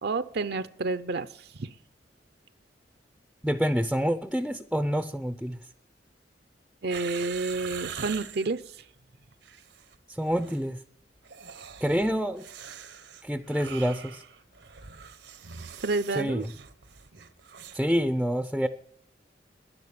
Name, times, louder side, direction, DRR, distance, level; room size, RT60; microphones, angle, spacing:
voice 1, 0.0-1.3 1.6-1.7 6.8-8.6 15.8-16.5, right 3 dB, 65° right, 12 dB, 0.7 m, -29 dB
voice 2, 3.4-5.6 10.1-10.8 11.8-12.4 13.2-14.2 16.1-16.5 17.7-18.7, equal, ahead, 11 dB, 0.6 m, -27 dB
sound 1, 6.9-8.5 9.3-10.0 10.2-10.6 11.2-17.9 18.1-18.2, right 7 dB, 80° right, 1.2 m, -43 dB
11.0 x 11.0 x 8.7 m, 0.69 s
head